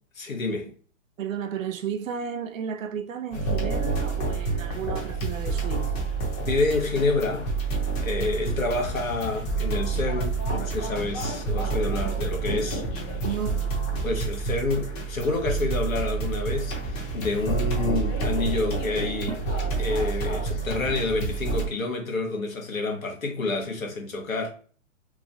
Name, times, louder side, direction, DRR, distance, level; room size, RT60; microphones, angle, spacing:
voice 1, 0.2-0.7 6.4-7.5 8.0-12.8 13.9-19.3 19.8-24.5, left 3 dB, 85° left, 1.0 m, -28 dB
voice 2, 1.2-6.1 13.2-13.6 19.3-19.4, right 8 dB, 80° right, 0.5 m, -33 dB
sound 1, 3.3-21.7, right 4 dB, 30° left, 0.8 m, -28 dB
3.0 x 2.5 x 2.5 m
hypercardioid pair, 125°, 39 cm